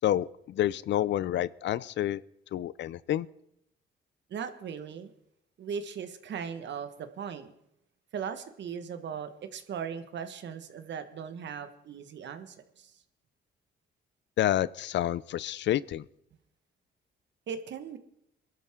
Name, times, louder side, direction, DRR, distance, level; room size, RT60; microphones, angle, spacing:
voice 1, 0.0-2.2 2.5-3.3 14.4-16.1, left 12 dB, 65° left, 20 dB, 0.5 m, -28 dB
voice 2, 4.3-5.1 5.6-7.5 8.1-12.9 17.5-18.0, right 7 dB, 65° right, 9 dB, 1.5 m, -38 dB
22.0 x 12.5 x 3.7 m, 0.77 s
cardioid pair, 90°, 20 cm